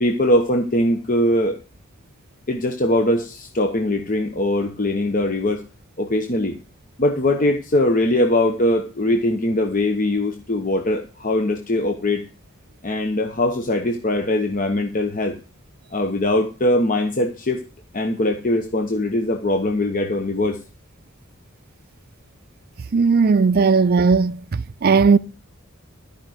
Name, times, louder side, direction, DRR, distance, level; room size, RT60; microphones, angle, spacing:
voice 1, 0.0-1.6 2.5-5.6 6.0-6.6 7.0-12.2 12.8-15.4 15.9-17.6 17.9-20.6, left 1 dB, 40° left, 1.0 m, -21 dB
voice 2, 22.9-24.4 24.8-25.2, right 5 dB, 45° right, 0.4 m, -16 dB
13.0 x 5.2 x 6.4 m
head